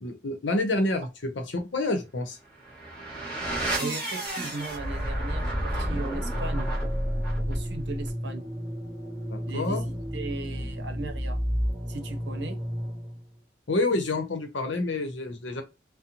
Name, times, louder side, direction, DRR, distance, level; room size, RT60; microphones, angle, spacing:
voice 1, 0.0-2.4 9.3-9.8 13.7-15.6, left 2 dB, 80° left, 0.8 m, -28 dB
sound 1, 2.5-13.2, equal, 10° left, 1.2 m, -31 dB
voice 2, 3.8-6.7 7.5-8.5 9.5-11.4 11.9-12.6, right 3 dB, 70° right, 0.7 m, -37 dB
2.9 x 2.1 x 2.5 m
head